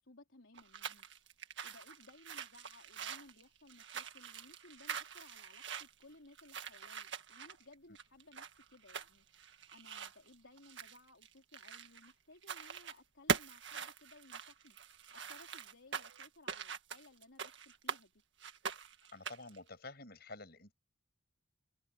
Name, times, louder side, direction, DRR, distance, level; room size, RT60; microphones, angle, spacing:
voice 1, 0.0-1.3 1.6-9.3 9.7-14.8 15.1-18.1, left 2 dB, 70° left, 4.1 m, -60 dB
sound 1, 0.5-12.1 12.4-13.0 13.3-18.0 18.4-19.6, right 6 dB, 60° right, 1.9 m, -43 dB
voice 2, 19.1-20.7, left 3 dB, 50° left, 7.6 m, -50 dB
head